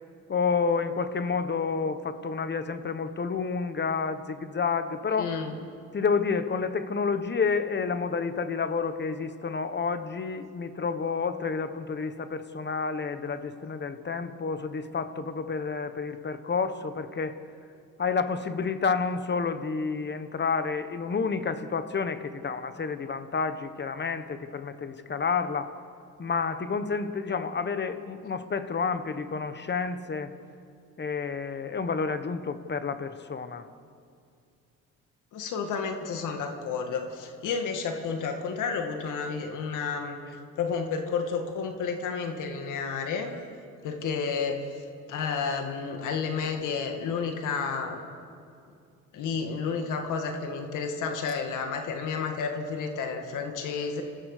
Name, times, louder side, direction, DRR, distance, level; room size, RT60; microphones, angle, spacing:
voice 1, 0.3-5.3 5.9-17.4 18.0-25.7 26.2-30.3 31.0-33.6, left 5 dB, 35° left, 10 dB, 1.4 m, -29 dB
voice 2, 5.2-5.6 35.3-40.2 40.6-43.3 43.8-44.7 45.1-48.0 49.1-54.0, left 5 dB, 85° left, 4 dB, 2.0 m, -31 dB
28.0 x 15.0 x 6.8 m, 2.4 s
cardioid pair, 90°, 30 cm